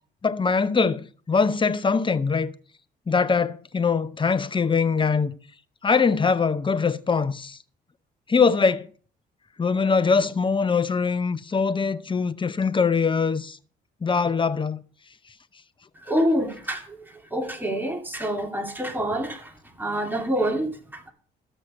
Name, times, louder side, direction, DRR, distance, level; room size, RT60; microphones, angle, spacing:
voice 1, 0.2-2.5 3.1-5.3 5.8-7.6 8.3-8.9 9.6-13.6 14.0-14.8, left 5 dB, 25° left, 0.8 m, -22 dB
voice 2, 16.0-21.1, equal, 10° right, 2.6 m, -27 dB
13.5 x 6.3 x 6.3 m
cardioid pair, 90°, 20 cm